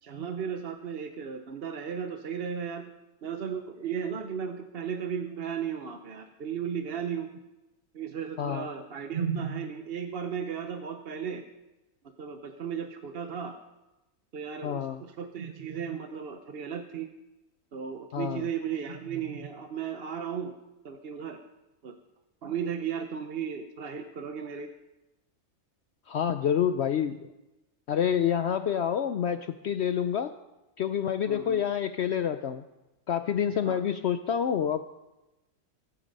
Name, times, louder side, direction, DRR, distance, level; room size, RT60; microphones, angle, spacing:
voice 1, 0.0-2.9 3.2-7.3 7.9-11.4 12.2-13.5 14.3-17.1 17.7-20.5 20.8-21.4 21.8-21.9 22.4-24.7 31.3-31.6 33.6-33.8, right 7 dB, 50° right, 6 dB, 1.0 m, -35 dB
voice 2, 8.4-8.7 14.6-15.0 18.1-18.4 26.1-27.2 27.9-30.3 30.8-32.6 33.1-34.9, left 8 dB, 60° left, 10 dB, 0.8 m, -28 dB
22.0 x 8.9 x 5.3 m, 1.0 s
omnidirectional pair, 1.4 m